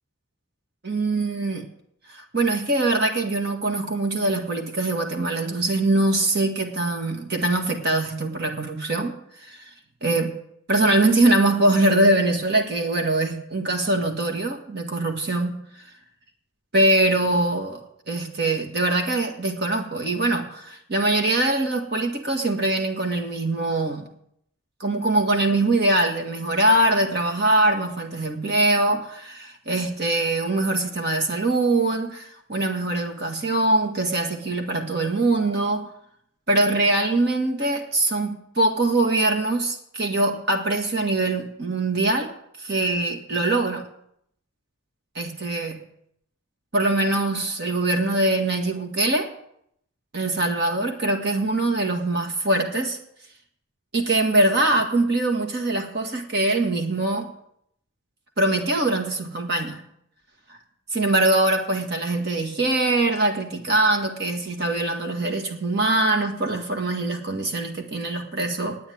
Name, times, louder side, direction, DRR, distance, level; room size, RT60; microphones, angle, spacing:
voice 1, 0.8-1.7 2.1-9.7 10.0-10.3 10.7-15.9 16.7-17.8 18.1-24.1 24.8-35.9 36.5-42.3 42.6-43.9 45.2-45.8 46.7-49.3 50.1-53.0 53.9-57.3 58.4-59.8 60.5-60.6 60.9-68.8, right 2 dB, 50° right, 3 dB, 1.7 m, -23 dB
10.0 x 9.3 x 9.5 m, 0.71 s
head